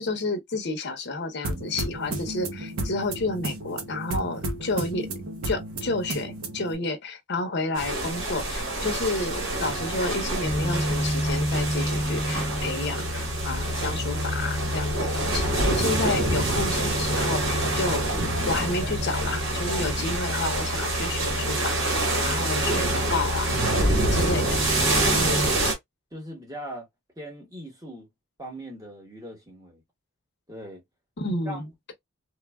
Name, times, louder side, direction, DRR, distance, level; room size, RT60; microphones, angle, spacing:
voice 1, 0.0-5.1 5.4-18.1 18.5-23.6 24.1-24.8 25.1-25.5 31.2-31.9, left 2 dB, 50° left, 0.7 m, -30 dB
sound 1, 1.4-6.8, right 2 dB, 80° right, 0.8 m, -33 dB
sound 2, 7.8-25.7, right 2 dB, 60° right, 1.1 m, -27 dB
sound 3, 10.4-25.5, left 1 dB, ahead, 0.6 m, -31 dB
voice 2, 26.1-26.9 27.2-28.1 28.4-29.8 30.5-30.8 31.4-31.6, equal, 15° right, 1.0 m, -40 dB
3.2 x 2.3 x 2.2 m
head